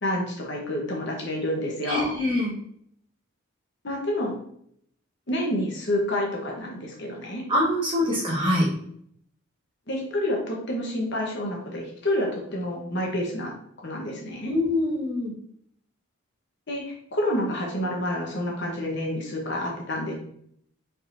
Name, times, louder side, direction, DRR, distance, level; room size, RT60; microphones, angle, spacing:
voice 1, 0.0-2.1 3.8-4.3 5.3-7.4 9.9-13.5 13.8-14.5 16.7-20.1, left 1 dB, 55° left, -1 dB, 1.1 m, -28 dB
voice 2, 1.9-2.5 7.5-8.7 14.4-15.3, left 1 dB, 25° right, -5 dB, 1.4 m, -24 dB
4.8 x 4.1 x 2.7 m, 0.67 s
head